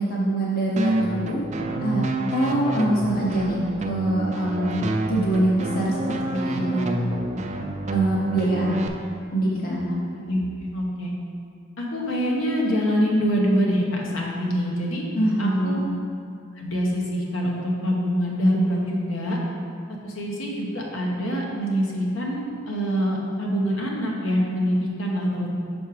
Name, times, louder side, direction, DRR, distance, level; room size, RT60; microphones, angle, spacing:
voice 1, 0.0-1.4 1.8-4.7 5.1-7.0 7.9-8.8 9.3-9.9 15.2-15.9, right 1 dB, 50° left, -4 dB, 0.8 m, -24 dB
sound 1, 0.8-8.9, right 2 dB, 35° right, 0.4 m, -27 dB
voice 2, 10.7-11.1 11.8-15.0 15.4-15.8 16.6-19.4 19.9-25.5, equal, 75° left, -2 dB, 1.0 m, -25 dB
5.7 x 4.4 x 4.8 m, 2.4 s
head